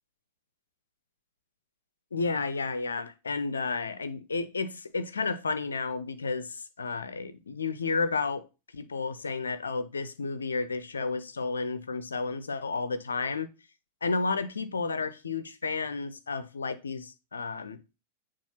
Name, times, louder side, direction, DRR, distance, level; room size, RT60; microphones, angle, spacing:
voice 1, 2.1-8.5 8.7-13.5 14.0-17.8, left 4 dB, 75° left, 0.5 m, -32 dB
7.1 x 2.5 x 5.6 m
figure-of-eight pair, 90°, 0 cm